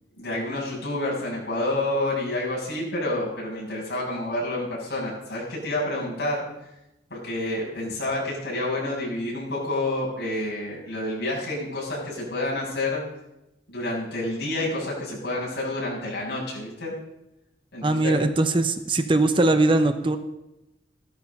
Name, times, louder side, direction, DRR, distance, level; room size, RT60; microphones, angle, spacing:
voice 1, 0.2-6.5 7.1-13.0 13.7-16.9 17.7-18.1, left 1 dB, 65° left, -5 dB, 7.6 m, -29 dB
voice 2, 17.8-20.2, right 2 dB, 25° right, 8 dB, 0.8 m, -21 dB
15.0 x 13.0 x 5.5 m, 0.90 s
head